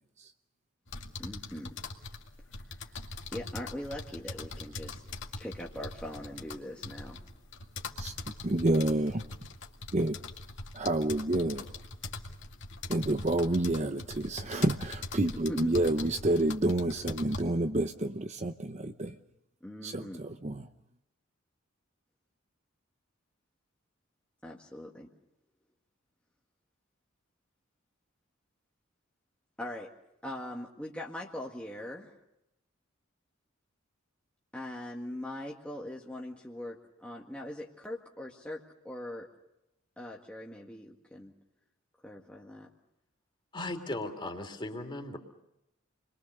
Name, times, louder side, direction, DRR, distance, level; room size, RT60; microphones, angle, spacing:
sound 1, 0.9-17.4, left 3 dB, 60° left, 2.3 m, -42 dB
voice 1, 1.2-1.7 2.7-2.9 3.3-5.0 5.4-7.2 15.5-15.8 19.6-20.2 24.4-25.1 29.6-29.9 30.2-32.1 34.5-39.3 40.0-41.3 42.0-42.7, left 1 dB, 5° left, -2 dB, 1.8 m, -41 dB
voice 2, 8.4-9.2 9.9-10.2 10.7-11.6 12.9-19.1 19.8-20.6, right 1 dB, 35° right, 8 dB, 0.8 m, -29 dB
voice 3, 43.5-45.2, left 1 dB, 25° left, 4 dB, 3.2 m, -37 dB
29.5 x 22.5 x 6.7 m, 0.87 s
head